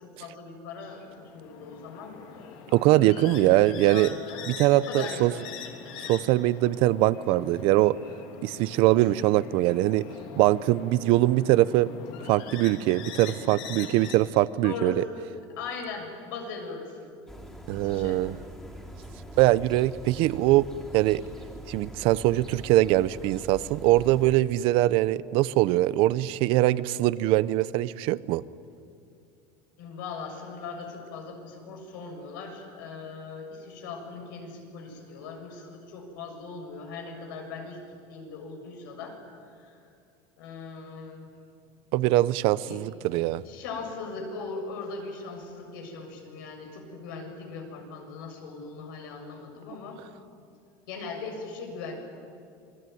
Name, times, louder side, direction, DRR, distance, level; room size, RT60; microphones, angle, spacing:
voice 1, 0.0-2.2 2.9-4.4 4.7-5.4 14.6-15.0 15.6-17.1 17.7-18.2 29.8-39.2 39.5-39.8 40.4-41.3 42.7-42.8 43.4-50.0 50.9-51.9, left 4 dB, 90° left, 3 dB, 7.1 m, -39 dB
sound 1, 0.9-14.2, left 7 dB, 65° left, 3.6 m, -43 dB
voice 2, 2.7-4.1 4.5-5.3 6.1-8.0 8.4-10.1 10.4-11.9 12.3-15.0 17.7-18.4 19.4-20.7 20.9-21.2 21.7-28.4 41.9-43.4, right 16 dB, 55° right, 17 dB, 0.7 m, -22 dB
sound 2, 17.3-24.4, equal, 5° left, 3.1 m, -43 dB
27.0 x 21.5 x 9.4 m, 2.4 s
cardioid pair, 150°, 11 cm